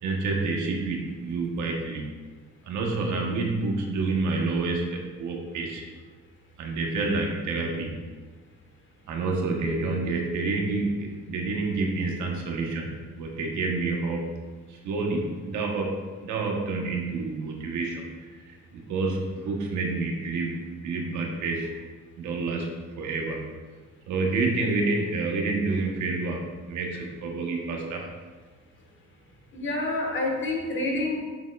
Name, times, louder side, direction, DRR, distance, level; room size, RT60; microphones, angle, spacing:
voice 1, 0.0-2.0 2.6-5.8 6.6-8.0 9.1-14.3 14.7-21.7 22.2-23.4 24.1-28.1, right 3 dB, 75° right, 1 dB, 1.2 m, -28 dB
voice 2, 29.5-31.2, left 2 dB, 40° left, 0 dB, 1.4 m, -28 dB
7.1 x 6.1 x 2.4 m, 1.4 s
cardioid pair, 125°, 30 cm